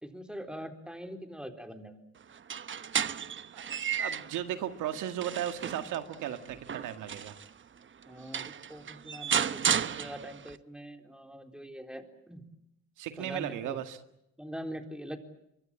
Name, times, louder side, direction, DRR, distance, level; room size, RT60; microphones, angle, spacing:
voice 1, 0.0-2.0 8.1-12.5 13.2-13.8 14.4-15.2, equal, 5° right, 6 dB, 3.9 m, -43 dB
sound 1, 2.3-4.4 4.9-7.5 8.0-8.1 8.3-10.6, right 7 dB, 40° right, 1.1 m, -33 dB
voice 2, 3.5-7.4 13.0-14.0, right 11 dB, 85° right, 8 dB, 2.0 m, -36 dB
25.5 x 23.5 x 8.7 m, 0.81 s
cardioid pair, 90°, 30 cm